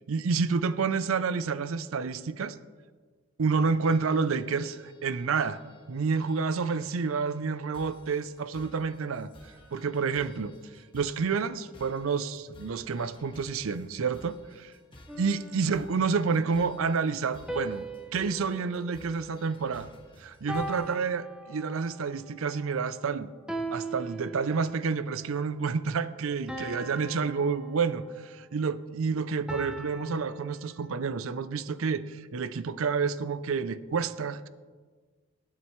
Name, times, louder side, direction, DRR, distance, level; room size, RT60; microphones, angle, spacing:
voice 1, 0.1-2.6 3.4-5.6 5.9-9.3 9.7-10.5 10.9-14.7 15.2-17.8 18.1-19.9 20.2-23.3 23.7-34.5, right 5 dB, 70° right, 15 dB, 0.5 m, -29 dB
sound 1, 3.8-21.0, left 1 dB, 25° left, 1.4 m, -55 dB
sound 2, 15.1-16.3 17.5-19.9 20.5-22.0 23.5-25.0 26.5-28.4 29.5-31.1, right 1 dB, 5° right, 0.7 m, -40 dB
20.5 x 7.5 x 3.1 m, 1.5 s
head